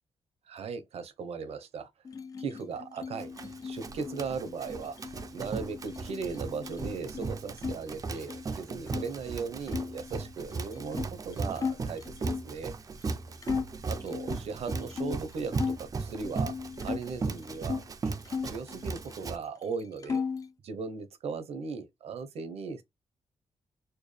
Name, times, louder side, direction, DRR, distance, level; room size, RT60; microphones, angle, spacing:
voice 1, 0.4-1.9 2.4-3.3 3.6-5.0 5.3-12.7 13.8-16.5 16.8-18.1 18.4-20.2 20.6-22.8, right 5 dB, 70° right, 0.9 m, -38 dB
sound 1, 2.0-7.8 8.1-9.1 9.7-12.5 13.0-13.1 13.4-15.8 16.2-17.9 18.2-19.4 19.6-20.5, left 5 dB, 30° left, 0.4 m, -37 dB
Run, 3.2-19.4, right 4 dB, 35° right, 0.5 m, -37 dB
4.4 x 2.3 x 3.2 m
wide cardioid pair, 150°, 11 cm